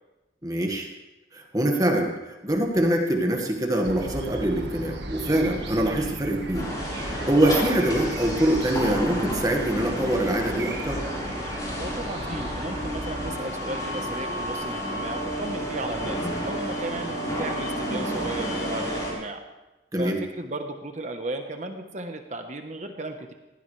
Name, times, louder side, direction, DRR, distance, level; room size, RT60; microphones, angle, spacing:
voice 1, 0.4-0.9 1.3-6.7 7.0-11.0 19.9-20.2, right 1 dB, 20° right, 2 dB, 1.7 m, -24 dB
sound 1, 3.8-13.3, right 1 dB, 80° right, 1.6 m, -36 dB
sound 2, 6.5-19.1, equal, 20° left, 4.6 m, -31 dB
voice 2, 11.8-19.4 20.0-23.3, right 2 dB, 40° right, 5 dB, 1.1 m, -35 dB
20.5 x 16.0 x 3.3 m, 1.1 s
head